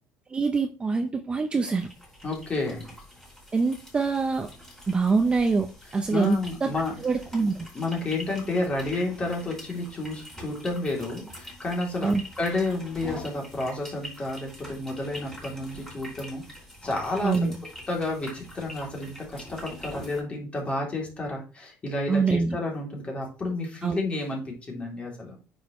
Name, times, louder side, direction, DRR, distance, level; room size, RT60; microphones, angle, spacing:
voice 1, 0.3-1.9 3.5-4.5 4.9-6.7 7.0-7.7 12.0-12.2 17.2-17.6 22.1-22.6 23.8-24.0, right 4 dB, 15° right, 5 dB, 0.6 m, -24 dB
sound 1, 1.8-20.2, equal, 5° left, 4.3 m, -45 dB
voice 2, 2.2-2.9 6.1-6.9 7.7-16.4 16.8-17.5 17.9-25.3, left 2 dB, 20° left, -1 dB, 3.0 m, -31 dB
9.1 x 6.5 x 3.1 m, 0.33 s
cardioid pair, 155°, 6 cm